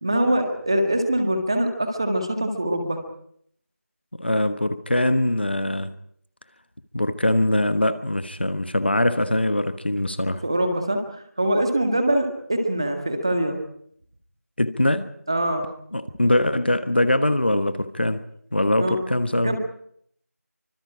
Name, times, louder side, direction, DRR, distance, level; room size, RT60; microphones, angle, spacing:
voice 1, 0.0-3.0 10.4-13.6 15.3-15.7 18.8-19.0 19.4-19.6, right 1 dB, 20° right, 5 dB, 1.8 m, -23 dB
voice 2, 4.2-5.9 6.9-10.4 14.6-15.1 15.9-18.2 18.5-19.6, left 1 dB, 40° left, 11 dB, 1.1 m, -22 dB
25.5 x 25.0 x 5.0 m, 0.66 s
figure-of-eight pair, 175°, 9 cm